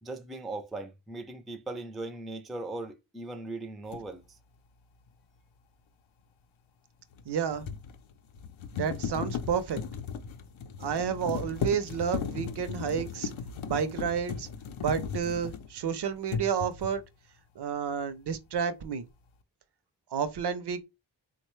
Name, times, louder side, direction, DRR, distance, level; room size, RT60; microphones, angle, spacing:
voice 1, 0.0-4.4, right 2 dB, ahead, 0.3 m, -39 dB
sound 1, 3.9-4.1 7.1-15.9 16.2-17.1, left 6 dB, 75° left, 0.6 m, -36 dB
voice 2, 7.3-7.7 8.7-9.8 10.8-13.3 13.7-14.5 14.8-17.0 17.6-19.0 20.1-20.8, right 7 dB, 55° right, 0.6 m, -30 dB
3.7 x 2.2 x 3.1 m
wide cardioid pair, 90°, 48 cm